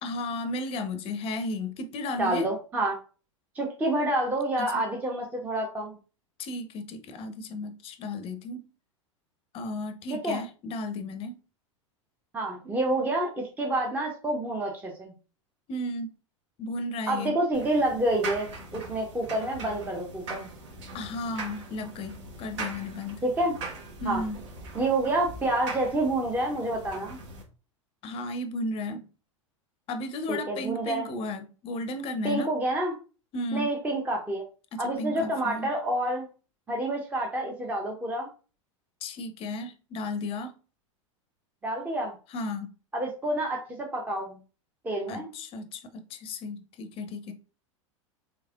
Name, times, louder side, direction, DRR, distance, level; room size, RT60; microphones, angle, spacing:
voice 1, 0.0-2.5 4.6-4.7 6.4-8.7 9.5-11.4 15.7-16.1 16.6-17.3 20.9-23.2 24.0-24.4 28.0-29.0 29.9-32.5 33.3-33.7 34.7-35.7 39.0-40.6 42.3-42.7 45.1-47.3, left 2 dB, 35° left, 8 dB, 0.6 m, -34 dB
voice 2, 2.2-3.0 3.5-5.9 10.2-10.4 12.3-15.1 17.1-20.5 23.2-23.5 24.1-24.2 24.7-27.2 30.3-31.1 32.2-32.9 33.5-34.4 34.8-36.3 36.7-38.3 41.6-42.1 42.9-44.4 44.8-45.3, right 1 dB, 10° right, 0 dB, 0.7 m, -28 dB
sound 1, 17.5-27.4, right 3 dB, 60° right, 1.1 m, -41 dB
3.4 x 3.2 x 2.4 m, 0.36 s
figure-of-eight pair, 90°, 17 cm